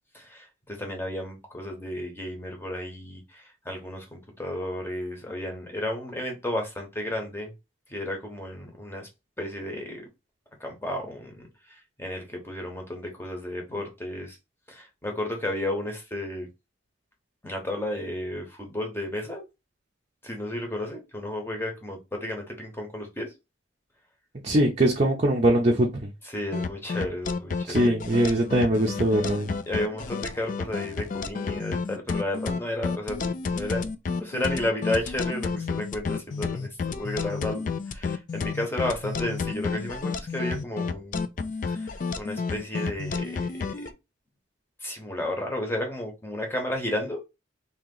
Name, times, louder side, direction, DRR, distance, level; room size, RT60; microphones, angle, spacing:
voice 1, 0.1-7.5 7.9-9.1 9.4-10.1 10.6-14.4 14.7-16.5 17.4-19.4 20.2-23.3 26.2-27.9 29.7-33.9 34.2-41.3 41.7-43.9 44.8-47.2, left 1 dB, 10° left, 1.0 m, -33 dB
voice 2, 24.4-26.1 27.7-29.5, right 1 dB, 35° right, 0.6 m, -22 dB
sound 1, 26.5-43.9, left 4 dB, 40° left, 0.3 m, -31 dB
2.9 x 2.8 x 3.8 m
head